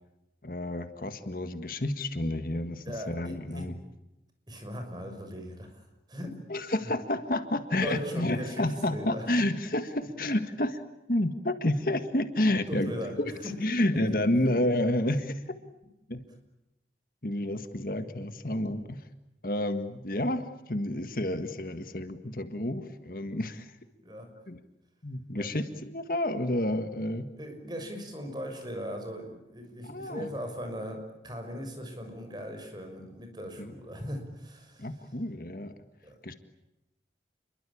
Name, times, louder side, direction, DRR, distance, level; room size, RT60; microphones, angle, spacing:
voice 1, 0.4-3.7 6.5-10.8 11.1-12.9 13.2-15.4 16.1-16.2 17.2-19.0 19.4-23.7 24.5-24.6 25.0-27.3 29.8-30.3 33.6-33.7 34.8-35.7 36.2-36.3, left 1 dB, 50° left, 9 dB, 1.7 m, -30 dB
voice 2, 2.9-3.7 4.5-5.8 6.1-6.4 6.8-6.9 7.8-9.3 12.7-13.5 14.2-14.5 24.0-24.3 25.3-25.5 27.4-34.9 36.0-36.2, equal, 25° right, 5 dB, 6.3 m, -39 dB
29.0 x 23.0 x 8.6 m, 0.93 s
head